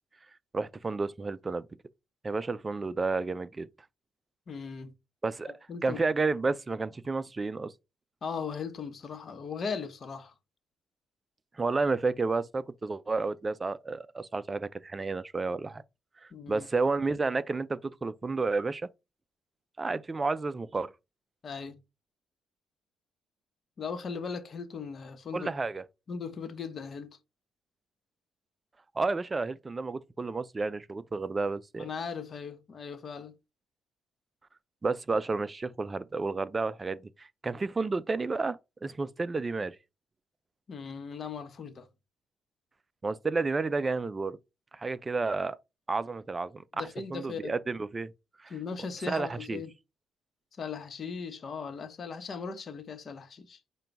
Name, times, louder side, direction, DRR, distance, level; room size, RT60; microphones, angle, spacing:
voice 1, 0.5-1.7 2.2-3.7 5.2-5.5 5.8-7.7 11.6-15.8 16.5-18.9 19.8-20.9 25.3-25.8 29.0-31.9 34.8-39.8 43.0-44.4 44.7-45.6 45.9-48.1 48.4-48.5 49.1-49.6, right 3 dB, 25° right, 0.4 m, -31 dB
voice 2, 4.5-4.9 5.4-6.0 8.2-10.3 16.3-16.7 21.4-21.8 23.8-25.5 26.1-27.2 31.8-33.3 40.7-41.9 46.7-47.6 48.5-49.7 50.5-53.6, left 5 dB, 45° left, 0.9 m, -38 dB
5.1 x 2.3 x 4.5 m
cardioid pair, 90°, 0 cm